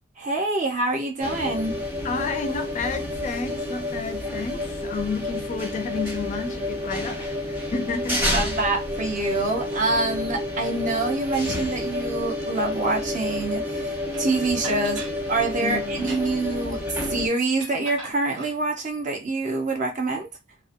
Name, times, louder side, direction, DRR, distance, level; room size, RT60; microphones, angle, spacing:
voice 1, 0.2-1.8 8.3-20.3, right 3 dB, 40° right, 0.6 m, -26 dB
sound 1, 1.2-17.3, left 1 dB, 10° right, 0.8 m, -29 dB
voice 2, 2.0-8.6 15.6-16.1, left 4 dB, 40° left, 0.4 m, -31 dB
sound 2, 14.1-14.2 14.6-15.2 15.9-16.5 17.6-18.6, right 3 dB, 85° right, 0.8 m, -39 dB
2.6 x 2.0 x 2.5 m
head